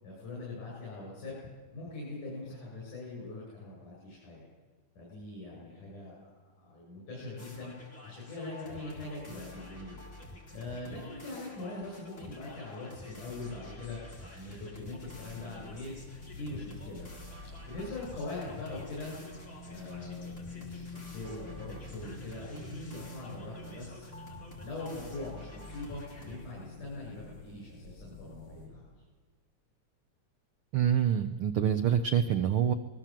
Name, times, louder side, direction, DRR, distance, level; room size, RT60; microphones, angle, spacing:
voice 1, 0.0-1.4 1.7-4.5 5.0-7.7 8.0-10.0 10.5-14.0 14.3-16.0 16.3-17.1 17.6-19.1 19.6-24.1 24.6-28.9, left 2 dB, 85° left, -5 dB, 8.9 m, -42 dB
sound 1, 7.4-26.5, left 1 dB, 20° left, 4.2 m, -49 dB
sound 2, 15.0-28.7, left 2 dB, 45° left, 7.5 m, -48 dB
voice 2, 30.7-32.7, right 9 dB, 75° right, 9 dB, 1.2 m, -26 dB
25.0 x 20.5 x 7.6 m, 1.4 s
omnidirectional pair, 3.5 m